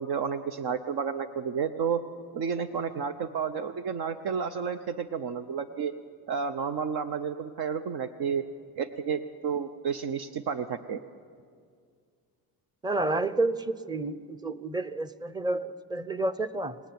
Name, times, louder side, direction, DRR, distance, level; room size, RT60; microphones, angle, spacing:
voice 1, 0.0-2.0 2.3-5.9 6.3-8.4 8.8-11.0, right 6 dB, 65° right, 9 dB, 0.9 m, -31 dB
voice 2, 12.8-16.8, right 2 dB, 10° right, 15 dB, 0.7 m, -30 dB
26.5 x 18.0 x 9.5 m, 2.1 s
cardioid pair, 120°, 40 cm